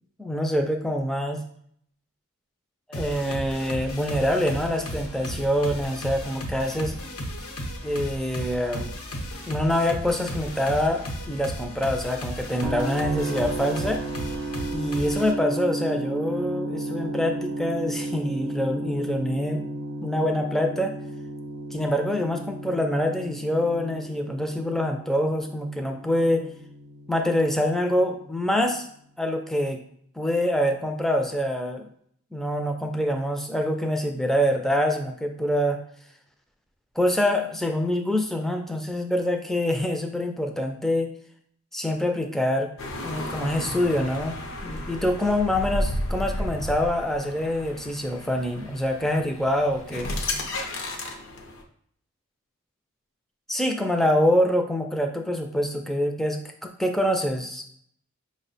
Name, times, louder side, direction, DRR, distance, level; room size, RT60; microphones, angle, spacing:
voice 1, 0.2-1.4 2.9-7.0 7.8-8.9 9.5-14.0 14.7-19.6 20.0-21.0 21.7-26.5 27.1-28.9 29.2-29.8 30.2-31.8 32.3-35.8 37.0-41.1 41.7-42.7 43.0-50.1 53.5-57.6, left 1 dB, ahead, 3 dB, 0.3 m, -25 dB
sound 1, 2.9-15.3, equal, 80° left, 0.9 m, -35 dB
sound 2, 12.6-28.5, right 2 dB, 85° right, 0.5 m, -33 dB
sound 3, 42.8-51.6, left 1 dB, 65° left, 0.6 m, -33 dB
5.3 x 2.1 x 3.9 m, 0.65 s
head